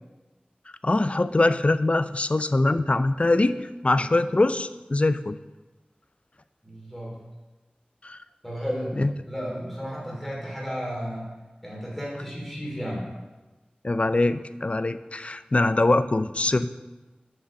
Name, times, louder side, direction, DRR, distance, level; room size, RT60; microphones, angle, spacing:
voice 1, 0.8-5.4 8.0-8.2 9.0-9.1 13.8-16.7, left 2 dB, 40° left, 13 dB, 0.3 m, -23 dB
voice 2, 6.6-7.1 8.4-11.3 11.6-13.0, equal, 5° left, -4 dB, 2.9 m, -33 dB
6.3 x 6.2 x 5.1 m, 1.2 s
wide cardioid pair, 55°, 3 cm